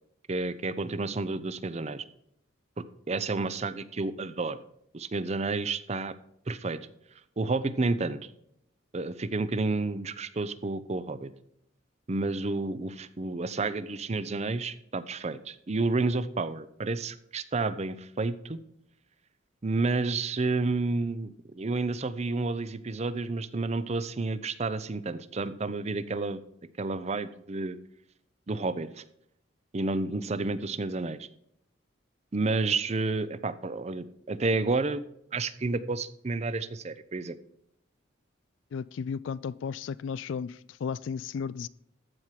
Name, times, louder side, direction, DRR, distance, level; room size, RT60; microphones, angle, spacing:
voice 1, 0.3-2.0 2.8-4.6 4.9-6.1 6.5-6.8 7.4-8.3 8.9-11.3 12.1-18.6 19.6-26.4 26.8-27.8 28.5-29.0 29.7-31.3 32.3-35.0 35.3-37.3, right 3 dB, 35° right, 0.5 m, -30 dB
voice 2, 38.7-41.7, left 6 dB, 70° left, 0.3 m, -34 dB
14.0 x 4.7 x 5.8 m
head